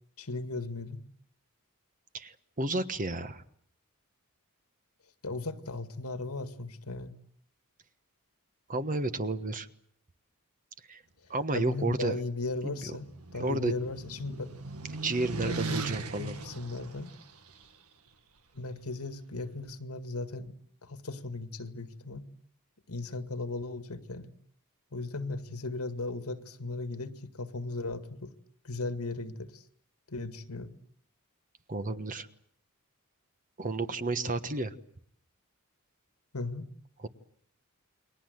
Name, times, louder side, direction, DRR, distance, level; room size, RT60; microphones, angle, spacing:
voice 1, 0.2-1.0 5.2-7.2 11.5-13.1 13.3-14.5 15.4-15.6 16.2-17.1 18.5-20.5 20.8-22.2 22.9-24.3 24.9-28.3 28.6-29.6 30.1-30.7 36.3-36.7, left 3 dB, 80° left, 10 dB, 1.9 m, -36 dB
voice 2, 2.1-3.4 8.7-9.7 10.9-11.0 11.3-12.2 12.6-12.8 13.4-13.7 15.0-16.4 31.7-32.3 33.6-34.7 37.0-37.1, right 2 dB, 40° right, 11 dB, 1.3 m, -31 dB
sound 1, 12.4-17.7, right 3 dB, 80° right, 1.8 m, -39 dB
30.0 x 22.0 x 8.0 m, 0.65 s
head